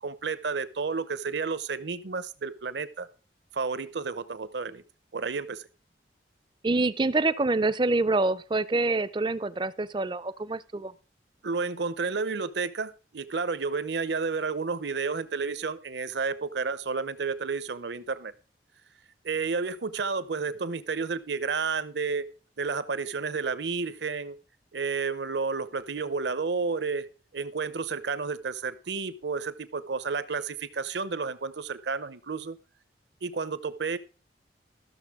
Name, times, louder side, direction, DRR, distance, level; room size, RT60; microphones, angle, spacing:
voice 1, 0.0-3.1 3.5-4.8 5.1-5.7 11.4-18.3 19.2-22.2 22.6-24.4 24.7-27.1 27.3-32.6 33.2-34.0, right 4 dB, 70° right, 0.8 m, -31 dB
voice 2, 6.6-10.9, right 2 dB, 25° right, 0.4 m, -26 dB
14.0 x 6.7 x 4.8 m
head